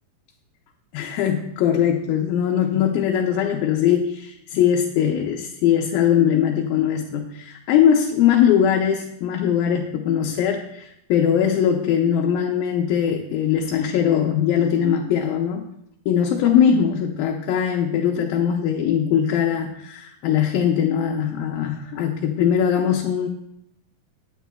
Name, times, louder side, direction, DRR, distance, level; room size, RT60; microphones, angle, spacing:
voice 1, 0.9-15.7 16.1-23.3, left 9 dB, 80° left, 1 dB, 2.5 m, -21 dB
19.5 x 9.2 x 2.3 m, 0.78 s
omnidirectional pair, 4.2 m